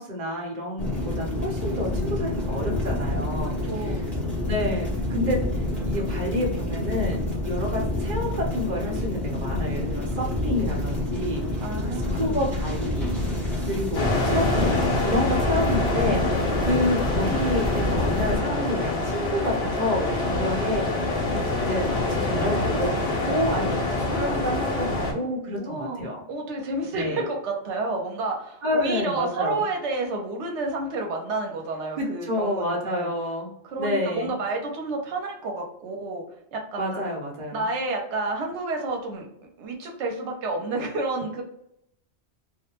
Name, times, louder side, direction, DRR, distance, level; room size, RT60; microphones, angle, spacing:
voice 1, 0.0-4.0 4.4-5.4 5.8-11.7 12.1-13.3 13.6-20.8 21.6-26.2 26.9-27.2 28.6-29.6 32.0-33.5 33.8-34.3 36.8-37.7, left 1 dB, 45° right, -1 dB, 0.8 m, -29 dB
sound 1, 0.8-18.4, left 1 dB, ahead, 0.8 m, -28 dB
voice 2, 3.4-4.1 11.6-12.4 20.3-20.7 21.3-21.5 24.7-33.1 33.6-36.2 36.5-37.0 37.5-39.3 39.6-41.4, right 2 dB, 85° right, 2 dB, 0.9 m, -30 dB
sound 2, 13.9-25.1, left 2 dB, 70° left, 0.9 m, -26 dB
2.4 x 2.1 x 2.9 m, 0.76 s
omnidirectional pair, 1.1 m